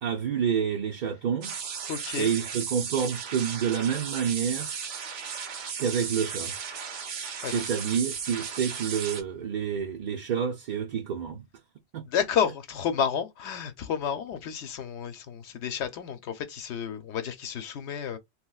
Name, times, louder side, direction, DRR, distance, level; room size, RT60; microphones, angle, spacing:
voice 1, 0.0-1.6 2.2-4.7 5.8-6.6 7.5-11.5 11.9-12.0, right 7 dB, 55° right, 0.6 m, -28 dB
sound 1, 1.4-9.2, right 6 dB, 90° right, 1.0 m, -35 dB
voice 2, 1.9-2.3 7.4-7.7 12.1-18.2, left 8 dB, 75° left, 0.9 m, -31 dB
3.1 x 2.9 x 2.3 m
omnidirectional pair, 1.2 m